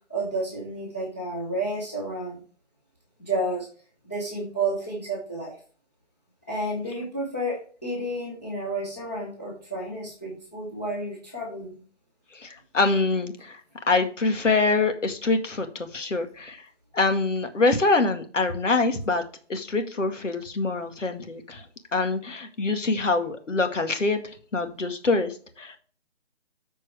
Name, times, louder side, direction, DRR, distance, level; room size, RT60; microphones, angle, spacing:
voice 1, 0.1-2.4 3.2-3.7 4.0-5.5 6.5-11.8, right 2 dB, 10° left, -7 dB, 1.0 m, -31 dB
voice 2, 12.3-13.6 13.9-16.6 16.9-19.2 19.5-21.6 21.9-24.2 24.5-25.8, left 3 dB, 85° left, 6 dB, 2.1 m, -25 dB
13.5 x 4.6 x 3.4 m, 0.41 s
hypercardioid pair, 175°, 36 cm